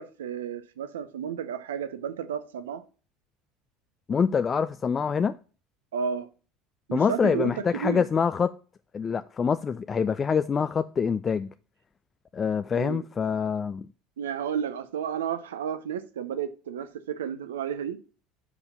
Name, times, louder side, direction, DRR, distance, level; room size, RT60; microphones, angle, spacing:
voice 1, 0.0-2.8 5.9-6.3 6.9-8.1 12.7-13.0 14.2-18.0, right 8 dB, 85° right, 0.6 m, -32 dB
voice 2, 4.1-5.4 6.9-8.5 8.9-11.5 12.3-13.9, left 6 dB, 30° left, 0.3 m, -25 dB
5.2 x 4.9 x 5.5 m
hypercardioid pair, 80°, 0 cm